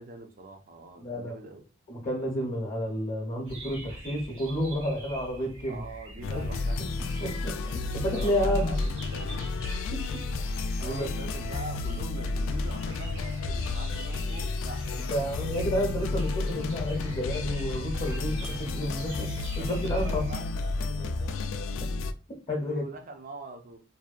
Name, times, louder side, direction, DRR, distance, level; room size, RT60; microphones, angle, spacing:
voice 1, 0.0-1.6 5.7-7.4 8.0-9.4 10.8-14.9 19.6-21.5 22.6-23.8, right 2 dB, 45° right, 0.5 m, -44 dB
voice 2, 1.0-1.4 1.9-5.8 6.3-6.5 6.8-6.9 7.2-8.7 9.9-10.5 10.8-11.1 15.1-20.2 22.5-22.8, equal, 35° left, 0.7 m, -31 dB
sound 1, 3.4-20.4, equal, 65° right, 1.3 m, -44 dB
sound 2, 6.2-22.1, left 3 dB, 85° left, 0.3 m, -31 dB
2.7 x 2.1 x 2.3 m
head